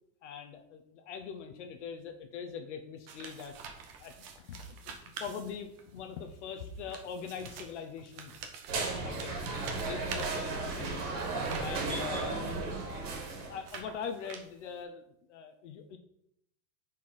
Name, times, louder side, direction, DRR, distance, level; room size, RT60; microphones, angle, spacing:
voice 1, 0.2-3.6 4.0-8.4 8.9-11.2 11.6-12.5 12.9-13.1 13.4-15.0 15.3-16.0, left 6 dB, 45° left, 6 dB, 0.6 m, -42 dB
sound 1, 3.1-6.0 6.7-12.2 12.8-14.8, right 5 dB, 35° right, 0.7 m, -46 dB
sound 2, 8.7-13.7, right 3 dB, 75° right, 2.1 m, -35 dB
5.5 x 4.4 x 4.7 m, 0.73 s
supercardioid pair, 180°, 49 cm